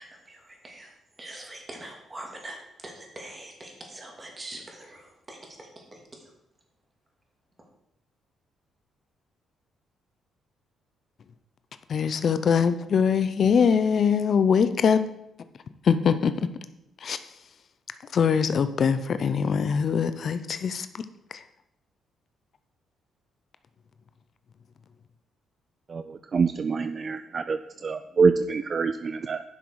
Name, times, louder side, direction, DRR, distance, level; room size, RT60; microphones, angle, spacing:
voice 1, 0.0-6.3, right 1 dB, 25° right, 0 dB, 2.7 m, -43 dB
voice 2, 11.9-15.0 15.8-16.5 17.0-17.3 18.1-21.1 21.3-21.4, left 6 dB, 55° left, 11 dB, 0.6 m, -23 dB
voice 3, 25.9-27.6 27.8-29.5, right 5 dB, 40° right, 11 dB, 0.4 m, -25 dB
11.0 x 6.1 x 4.8 m, 0.84 s
cardioid pair, 90°, 0 cm